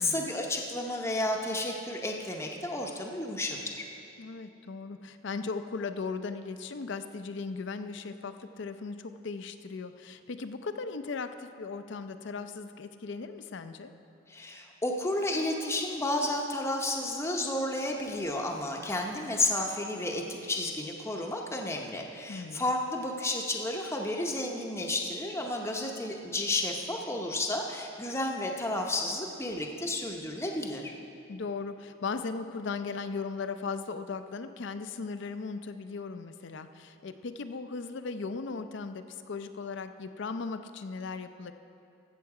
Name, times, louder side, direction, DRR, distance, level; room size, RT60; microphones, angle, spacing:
voice 1, 0.0-3.9 14.3-30.9, left 1 dB, 15° left, 1 dB, 0.7 m, -32 dB
voice 2, 4.2-13.9 22.3-22.7 31.3-41.5, left 4 dB, 55° left, 10 dB, 0.5 m, -37 dB
14.0 x 7.6 x 4.8 m, 2.6 s
head